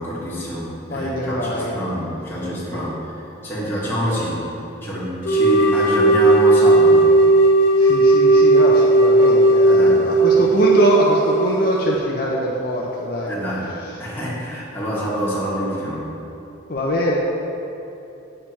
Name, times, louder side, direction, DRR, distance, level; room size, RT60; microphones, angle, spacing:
voice 1, 0.0-3.1 3.4-4.4 4.8-7.1 9.7-10.0 10.3-10.4 13.3-13.7 14.0-16.1, equal, 10° left, -8 dB, 1.9 m, -26 dB
voice 2, 0.9-1.7 2.7-2.8 7.8-13.3 13.8-14.1 16.7-17.2, equal, 50° left, -3 dB, 0.7 m, -23 dB
sound 1, 5.2-12.0, right 2 dB, 70° left, 1.2 m, -15 dB
8.7 x 6.7 x 4.4 m, 2.8 s
head